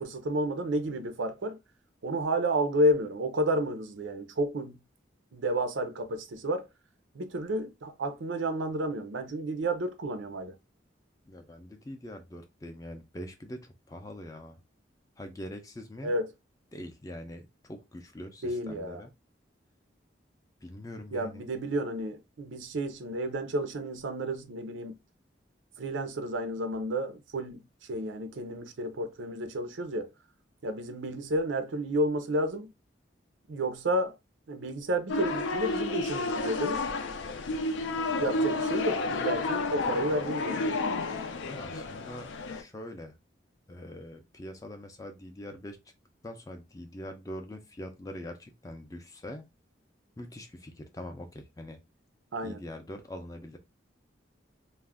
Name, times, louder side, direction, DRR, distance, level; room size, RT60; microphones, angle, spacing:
voice 1, 0.0-1.6 2.0-4.8 5.3-6.7 7.1-10.5 16.0-16.3 18.4-19.0 21.1-24.9 25.8-27.6 27.9-30.1 30.6-32.7 33.5-34.1 34.5-36.8 38.2-40.7 52.3-52.6, right 1 dB, 85° right, 0.5 m, -31 dB
voice 2, 11.3-14.6 15.2-16.1 16.7-19.1 20.6-21.5 41.4-43.2 43.7-45.8 46.2-49.5 50.2-51.8 52.4-53.6, left 1 dB, 20° left, 0.4 m, -43 dB
sound 1, 35.1-42.6, left 3 dB, 80° left, 0.4 m, -31 dB
2.4 x 2.1 x 3.4 m
head